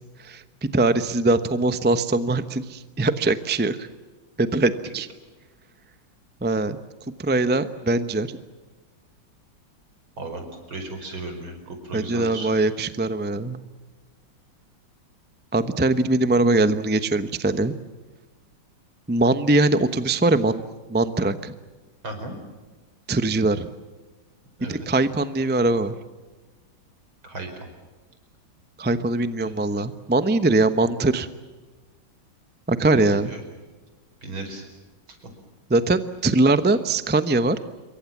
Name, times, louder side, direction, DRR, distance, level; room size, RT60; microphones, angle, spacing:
voice 1, 0.7-3.9 4.4-5.1 6.4-6.8 7.2-8.3 11.9-13.6 15.5-17.7 19.1-20.6 20.9-21.5 23.1-23.7 24.7-26.0 28.8-31.3 32.7-33.3 35.7-37.6, right 2 dB, 10° right, 11 dB, 0.5 m, -21 dB
voice 2, 10.2-12.6 22.0-22.4 24.6-24.9 27.2-27.7 29.4-29.9 30.8-30.9 32.8-33.4 34.2-34.7 35.2-35.3, right 2 dB, 85° right, 5 dB, 5.7 m, -36 dB
27.0 x 23.5 x 7.3 m, 1.3 s
omnidirectional pair, 2.2 m